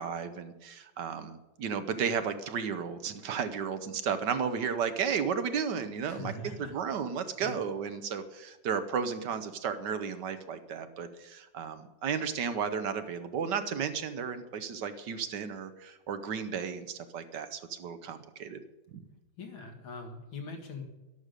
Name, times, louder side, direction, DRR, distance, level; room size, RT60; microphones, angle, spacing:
voice 1, 0.0-18.6, right 6 dB, 65° right, 10 dB, 1.4 m, -33 dB
voice 2, 6.1-6.7 7.4-7.6 19.4-20.8, left 2 dB, 85° left, 3 dB, 2.8 m, -42 dB
12.0 x 11.0 x 6.6 m, 1.1 s
omnidirectional pair, 2.1 m